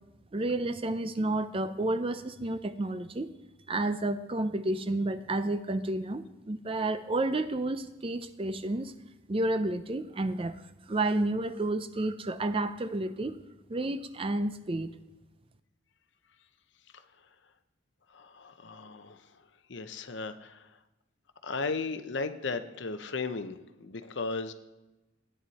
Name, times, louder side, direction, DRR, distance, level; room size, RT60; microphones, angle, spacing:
voice 1, 0.3-3.3 3.7-8.9 9.3-10.6 10.9-13.3 13.7-14.9, right 2 dB, 25° right, 11 dB, 0.5 m, -30 dB
voice 2, 18.1-19.2 19.7-20.7 21.4-24.5, left 4 dB, 60° left, 9 dB, 0.8 m, -35 dB
14.5 x 9.2 x 4.2 m, 1.1 s
head